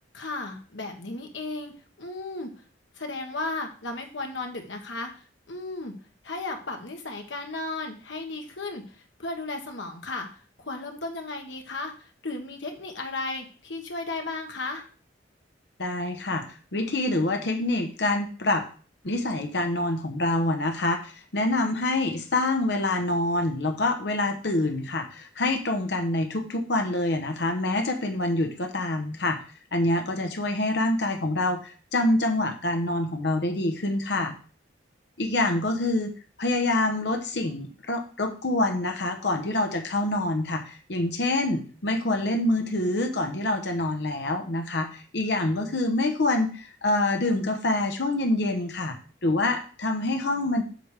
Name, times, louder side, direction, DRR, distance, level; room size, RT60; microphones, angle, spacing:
voice 1, 0.1-2.5 3.0-5.9 6.2-10.3 10.6-14.9, left 2 dB, 85° left, 3 dB, 1.4 m, -35 dB
voice 2, 15.8-16.4 16.7-18.6 19.0-29.4 29.7-34.3 35.2-36.1 36.4-49.0 49.2-50.6, left 2 dB, 65° left, 5 dB, 1.0 m, -26 dB
7.7 x 3.4 x 6.5 m, 0.39 s
head